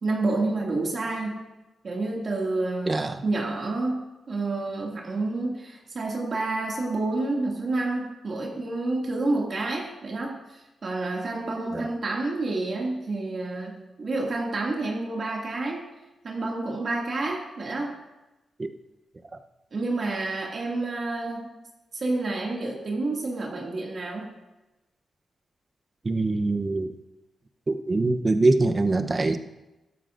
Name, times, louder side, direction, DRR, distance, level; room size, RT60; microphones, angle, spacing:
voice 1, 0.0-1.4 1.8-15.9 16.2-17.9 19.7-21.5 21.9-24.3, right 2 dB, 45° right, -2 dB, 2.1 m, -29 dB
voice 2, 2.9-3.2 11.7-11.9 18.6-18.7 26.0-26.9 27.7-29.4, right 2 dB, 25° right, 8 dB, 0.7 m, -23 dB
16.0 x 12.5 x 2.5 m, 1.0 s
wide cardioid pair, 125°, 0 cm